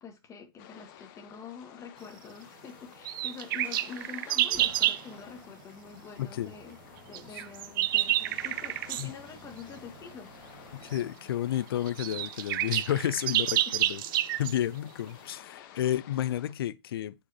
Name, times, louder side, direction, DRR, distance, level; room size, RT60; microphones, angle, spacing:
voice 1, 0.0-6.8 7.1-10.3 13.7-13.8, left 6 dB, 25° left, 2.0 m, -46 dB
sound 1, 0.6-16.5, left 11 dB, 55° left, 1.2 m, -52 dB
sound 2, 2.0-11.1, right 1 dB, 15° right, 3.1 m, -55 dB
sound 3, 3.0-5.0 7.1-9.1 10.9-11.0 11.6-11.7 11.9-14.6, right 14 dB, 60° right, 0.6 m, -29 dB
voice 2, 6.2-6.5 7.3-7.4 9.0-9.1 10.7-14.0 14.4-17.1, left 11 dB, 75° left, 0.6 m, -31 dB
8.6 x 5.2 x 2.9 m
hypercardioid pair, 115°, 13 cm